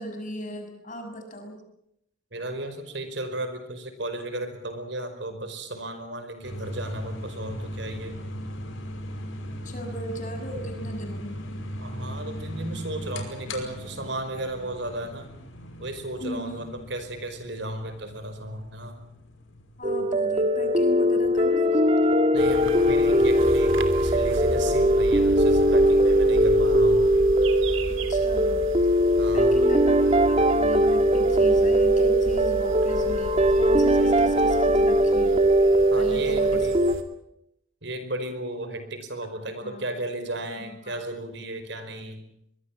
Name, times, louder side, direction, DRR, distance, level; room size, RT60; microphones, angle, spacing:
voice 1, 0.0-1.6 9.6-11.4 16.2-16.7 19.8-21.8 28.1-28.6 29.3-30.0 30.3-35.4 35.9-36.7 39.6-39.9 40.8-41.0, right 1 dB, 40° left, 5 dB, 6.6 m, -36 dB
voice 2, 2.3-8.1 11.8-15.3 15.8-19.0 22.3-23.7 24.0-27.0 29.2-29.6 35.9-36.8 37.8-42.2, right 1 dB, 60° right, 9 dB, 5.0 m, -34 dB
sound 1, 6.4-22.4, equal, 90° left, 5.6 m, -38 dB
sound 2, 19.8-36.9, equal, 30° right, 1.7 m, -20 dB
sound 3, 22.4-37.0, right 1 dB, 90° right, 3.1 m, -35 dB
24.5 x 22.5 x 7.5 m, 0.76 s
head